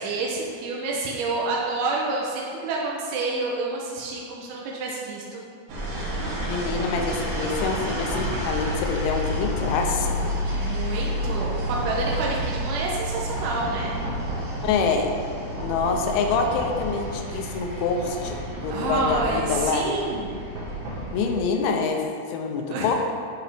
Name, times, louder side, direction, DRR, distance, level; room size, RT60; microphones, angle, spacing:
voice 1, 0.0-5.5 10.6-14.0 18.7-20.3 22.7-22.9, right 3 dB, 80° right, -3 dB, 3.2 m, -28 dB
sound 1, 5.7-21.3, equal, 65° right, 2.8 m, -30 dB
voice 2, 6.5-10.3 14.6-15.1 15.6-19.9 21.1-22.0 22.3-23.0, left 5 dB, 90° left, 3 dB, 3.0 m, -26 dB
10.5 x 5.0 x 3.4 m, 2.3 s
omnidirectional pair, 5.4 m